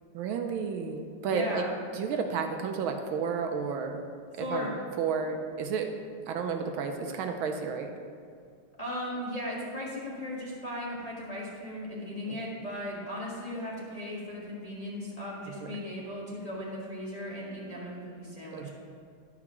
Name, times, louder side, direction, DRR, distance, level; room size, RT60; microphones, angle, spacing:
voice 1, 0.1-1.7 1.9-4.1 4.4-5.9 6.3-7.9 12.3-12.4 15.5-15.8 18.5-18.7, right 6 dB, 75° right, 4 dB, 1.4 m, -32 dB
voice 2, 1.3-1.7 4.4-4.8 8.8-18.7, left 1 dB, 20° left, -6 dB, 1.3 m, -37 dB
11.0 x 4.8 x 5.9 m, 2.3 s
omnidirectional pair, 2.3 m